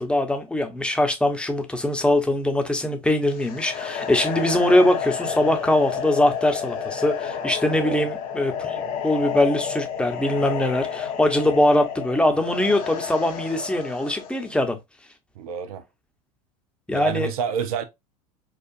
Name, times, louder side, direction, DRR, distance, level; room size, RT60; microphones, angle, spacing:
voice 1, 0.0-14.8 16.9-17.3, left 1 dB, 5° left, 0.9 m, -22 dB
sound 1, 3.3-14.4, left 7 dB, 50° left, 1.0 m, -30 dB
voice 2, 7.7-8.1 15.4-15.8 16.9-17.8, right 8 dB, 75° right, 0.6 m, -28 dB
4.7 x 2.4 x 2.5 m
hypercardioid pair, 80°, 19 cm